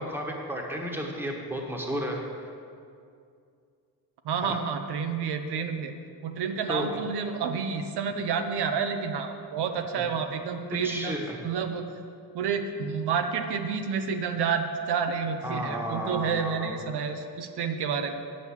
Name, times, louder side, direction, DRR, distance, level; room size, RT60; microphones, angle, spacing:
voice 1, 0.0-2.5 4.4-4.6 6.7-7.0 10.0-10.1 10.8-11.4 15.4-16.7, equal, 5° right, 0 dB, 1.3 m, -33 dB
voice 2, 4.2-5.9 6.2-11.2 11.4-11.9 12.3-18.2, right 6 dB, 85° right, 6 dB, 0.8 m, -29 dB
8.2 x 6.4 x 7.2 m, 2.3 s
cardioid pair, 120°, 39 cm